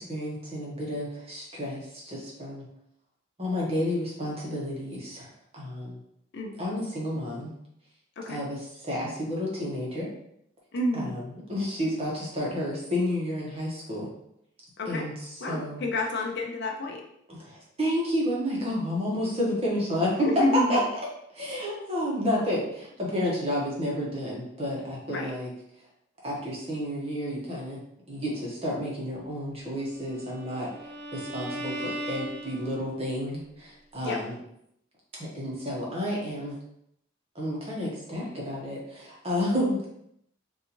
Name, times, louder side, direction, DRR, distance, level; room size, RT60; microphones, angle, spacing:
voice 1, 0.0-2.6 3.4-5.3 5.5-6.0 6.6-7.5 8.3-10.1 10.9-14.1 14.9-15.8 17.3-20.3 20.7-20.8 21.3-25.5 26.2-27.8 28.1-34.4 35.2-36.6 37.3-39.9, left 1 dB, 30° right, -4 dB, 1.0 m, -31 dB
voice 2, 10.7-11.2 14.8-15.1 15.4-17.0 20.2-20.8 25.1-25.3 34.0-34.2, left 2 dB, 55° left, 1 dB, 0.6 m, -29 dB
Bowed string instrument, 30.0-33.1, right 1 dB, 50° right, 0.5 m, -38 dB
3.9 x 2.7 x 2.9 m, 0.75 s
head